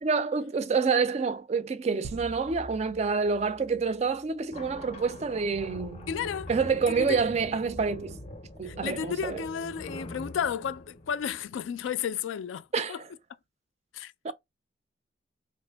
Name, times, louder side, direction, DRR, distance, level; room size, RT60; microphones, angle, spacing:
voice 1, 0.0-6.1 6.5-8.2 8.6-9.4 12.7-13.1 14.2-14.3, right 5 dB, 35° right, 0.3 m, -28 dB
sound 1, 2.0-4.9, right 1 dB, 85° right, 0.6 m, -46 dB
sound 2, 4.5-11.9, equal, 35° left, 0.5 m, -43 dB
voice 2, 6.1-6.5 6.9-7.2 8.6-13.0 13.9-14.3, left 8 dB, 90° left, 0.3 m, -33 dB
2.9 x 2.5 x 3.3 m
head